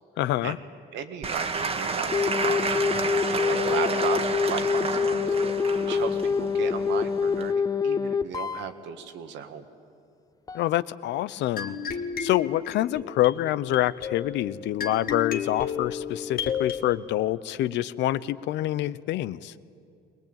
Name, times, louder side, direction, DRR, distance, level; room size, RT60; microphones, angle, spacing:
voice 1, 0.2-0.6 10.5-11.8 12.2-19.5, left 14 dB, 75° left, 17 dB, 0.7 m, -26 dB
voice 2, 0.9-3.2 3.5-5.3 5.8-9.6, right 7 dB, 80° right, 8 dB, 1.8 m, -35 dB
Applause / Crowd, 1.2-7.5, right 4 dB, 35° right, 1.6 m, -30 dB
sound 1, 2.1-8.7 10.5-10.6, left 5 dB, 20° left, 0.5 m, -26 dB
sound 2, 11.6-16.8, left 7 dB, 55° left, 1.6 m, -33 dB
22.0 x 20.0 x 8.9 m, 2.5 s
cardioid pair, 115°, 18 cm